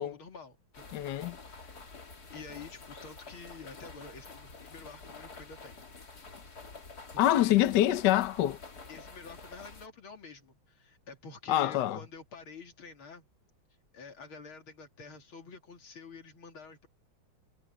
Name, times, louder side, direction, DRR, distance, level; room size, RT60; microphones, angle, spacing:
voice 1, 0.0-1.0 1.4-1.8 2.3-5.8 7.1-7.6 8.9-13.3 13.9-16.9, left 4 dB, 85° left, 3.6 m, -48 dB
sound 1, 0.7-9.9, left 4 dB, 50° left, 3.1 m, -49 dB
voice 2, 0.9-1.4 7.2-8.6 11.5-12.0, left 13 dB, 65° left, 1.3 m, -25 dB
omnidirectional pair, 2.2 m